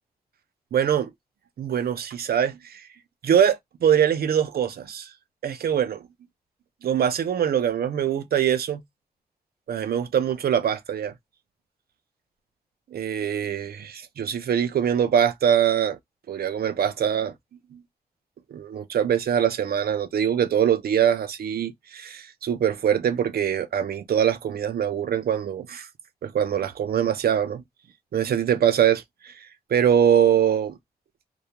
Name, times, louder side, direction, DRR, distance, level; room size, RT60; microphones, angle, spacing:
voice 1, 0.7-1.1 1.6-2.8 3.2-5.1 5.4-6.0 6.8-8.8 9.7-11.1 12.9-16.0 16.3-17.3 17.7-17.8 18.5-25.9 26.2-27.6 28.1-29.3 29.7-30.8, right 9 dB, 70° right, 0.5 m, -23 dB
2.3 x 2.1 x 2.8 m
cardioid pair, 55°, 16 cm